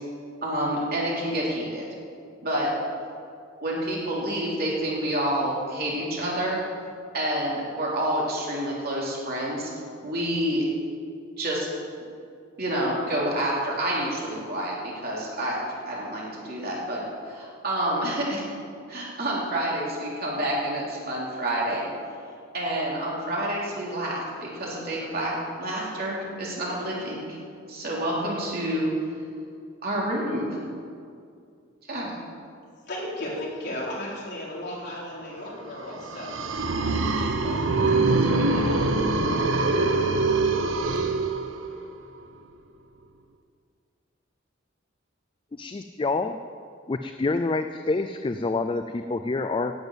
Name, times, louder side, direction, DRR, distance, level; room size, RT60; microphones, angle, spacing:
voice 1, 0.4-1.8 2.4-2.7 3.6-6.6 7.1-9.7 10.0-10.7 11.4-11.7 12.6-15.6 15.9-18.5 18.9-21.9 22.5-27.2 27.7-28.9 29.8-30.6 31.9-32.1, right 1 dB, 50° right, -4 dB, 3.4 m, -28 dB
voice 2, 32.9-38.8, left 1 dB, 55° left, -6 dB, 4.1 m, -36 dB
sound 1, 35.9-41.8, right 3 dB, 75° right, 1.0 m, -24 dB
voice 3, 45.5-46.4 46.9-49.7, left 3 dB, 25° left, 8 dB, 0.4 m, -27 dB
10.5 x 8.0 x 9.1 m, 2.3 s
head